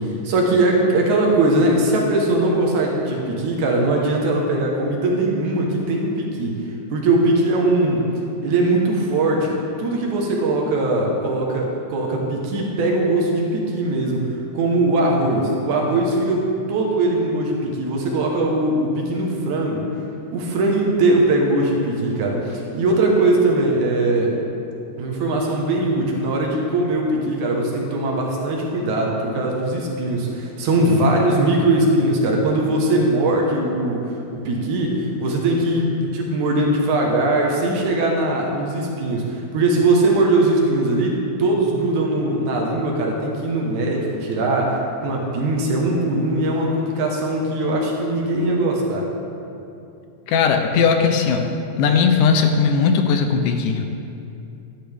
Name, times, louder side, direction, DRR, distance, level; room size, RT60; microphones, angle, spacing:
voice 1, 0.0-6.6 6.9-8.0 8.4-19.8 20.3-24.3 25.0-34.0 34.3-49.1, right 2 dB, 70° right, -1 dB, 2.5 m, -20 dB
voice 2, 50.3-51.5 51.8-53.8, left 5 dB, 80° left, 5 dB, 2.1 m, -18 dB
12.5 x 10.0 x 3.4 m, 2.7 s
omnidirectional pair, 3.8 m